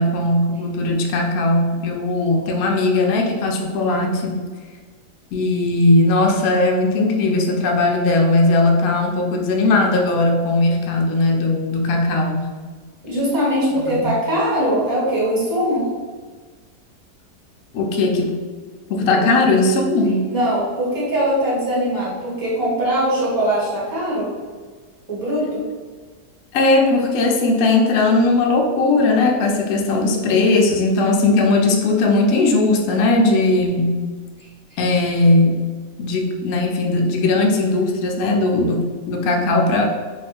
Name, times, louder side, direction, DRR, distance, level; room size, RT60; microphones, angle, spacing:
voice 1, 0.0-4.4 5.3-12.5 13.8-14.1 17.7-18.3 18.9-20.2 26.5-33.9 34.8-35.6 36.0-39.8, left 2 dB, 70° left, 1 dB, 0.9 m, -18 dB
voice 2, 13.0-15.9 19.1-19.2 20.3-24.3 25.1-25.6, equal, 15° right, -7 dB, 1.2 m, -21 dB
2.9 x 2.5 x 4.1 m, 1.4 s
omnidirectional pair, 1.8 m